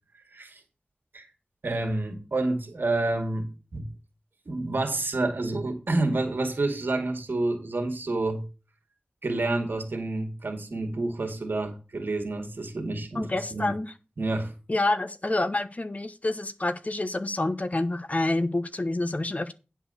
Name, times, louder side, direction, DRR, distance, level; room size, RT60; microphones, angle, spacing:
voice 1, 1.6-3.9 4.5-8.5 9.2-13.7 14.2-14.5, right 2 dB, 80° right, 4 dB, 2.1 m, -29 dB
voice 2, 13.1-13.9 14.7-19.5, left 2 dB, 45° left, 10 dB, 1.1 m, -28 dB
10.0 x 4.7 x 6.8 m, 0.32 s
wide cardioid pair, 50°, 4 cm